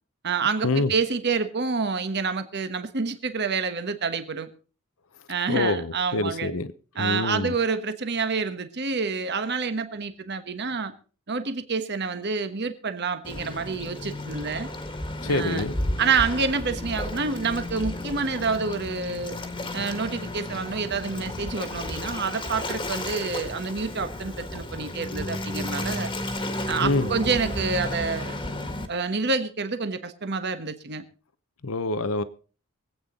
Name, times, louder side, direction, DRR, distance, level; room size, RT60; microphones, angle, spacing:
voice 1, 0.2-4.5 5.3-6.5 7.0-10.9 11.3-14.7 15.2-15.6 16.0-19.4 19.7-26.1 26.7-28.4 28.9-31.0, right 4 dB, 50° right, 1.3 m, -28 dB
voice 2, 5.5-7.5 15.2-15.7 26.8-27.1 31.6-32.2, left 2 dB, 65° left, 0.9 m, -26 dB
Waves surf, 13.2-28.9, left 1 dB, 20° left, 1.7 m, -33 dB
24.0 x 8.8 x 3.8 m
head